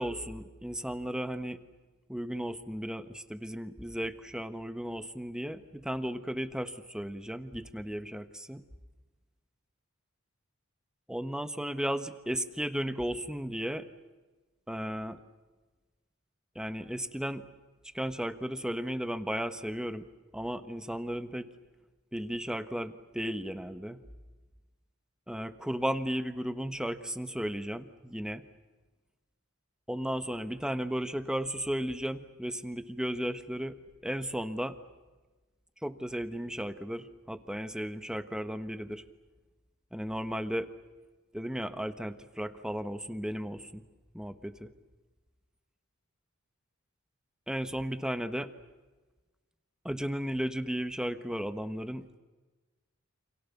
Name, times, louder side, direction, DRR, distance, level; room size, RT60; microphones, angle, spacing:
voice 1, 0.0-1.6 2.1-8.6 11.1-13.9 14.7-15.2 16.5-17.5 17.9-20.1 20.3-21.5 22.1-24.0 25.3-28.5 29.9-34.8 35.8-39.0 39.9-40.7 41.3-43.8 44.1-44.7 47.5-48.5 49.8-52.1, equal, 5° right, 11 dB, 1.3 m, -35 dB
29.5 x 27.5 x 7.2 m, 1.2 s
head